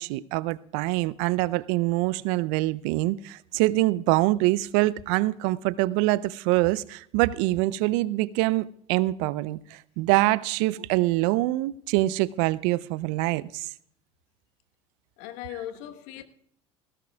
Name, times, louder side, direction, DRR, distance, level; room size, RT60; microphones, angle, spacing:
voice 1, 0.0-13.7, right 18 dB, 65° right, 0.6 m, -25 dB
voice 2, 15.2-16.2, left 12 dB, 65° left, 1.2 m, -38 dB
20.0 x 17.0 x 2.3 m
hypercardioid pair, 70°, 16 cm